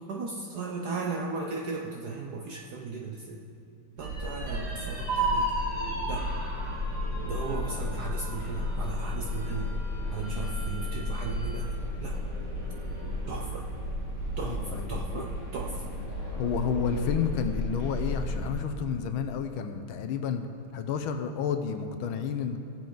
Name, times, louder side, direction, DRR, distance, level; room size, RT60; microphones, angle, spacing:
voice 1, 0.1-3.4 4.0-5.5 6.1-6.3 7.2-9.7 10.1-11.6 12.0-12.2 13.3-13.7 14.4-15.9, right 4 dB, 70° right, 0 dB, 1.0 m, -36 dB
sound 1, 4.0-18.5, left 1 dB, 35° right, 1.9 m, -33 dB
sound 2, 4.0-11.7 12.1-12.2 12.6-13.3, right 2 dB, 85° right, 3.4 m, -36 dB
voice 2, 14.4-15.2 16.4-20.4 20.7-22.6, left 7 dB, 75° left, 7 dB, 1.4 m, -31 dB
17.0 x 7.5 x 3.9 m, 2.9 s
omnidirectional pair, 2.4 m